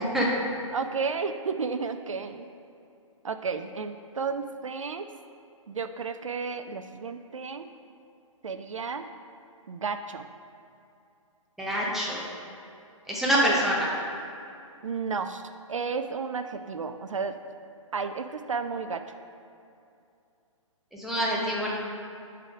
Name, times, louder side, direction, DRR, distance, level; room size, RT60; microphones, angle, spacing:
voice 1, 0.7-2.4 3.2-5.1 5.7-7.7 8.4-9.1 9.7-10.3 13.4-13.6 14.8-15.4 15.7-17.3 17.9-19.0, right 5 dB, 70° right, 9 dB, 0.4 m, -32 dB
voice 2, 11.6-12.2 13.1-13.9 20.9-21.7, equal, ahead, -5 dB, 0.7 m, -25 dB
8.2 x 3.5 x 4.8 m, 2.6 s
figure-of-eight pair, 125°, 17 cm